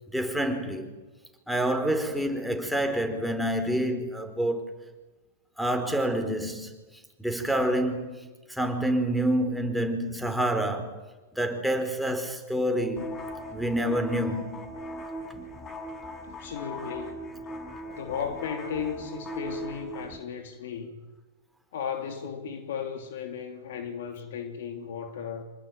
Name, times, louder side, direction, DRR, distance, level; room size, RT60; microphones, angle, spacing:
voice 1, 0.1-0.9 1.5-4.7 5.6-6.7 7.2-11.0 11.3-13.2 13.5-14.6, right 1 dB, ahead, 4.7 m, -27 dB
sound 1, 13.0-20.2, equal, 25° left, 5.8 m, -39 dB
voice 2, 16.3-17.3 18.0-21.0 21.7-25.4, left 7 dB, 65° left, 3.2 m, -35 dB
27.0 x 20.0 x 9.0 m
hypercardioid pair, 105°, 0 cm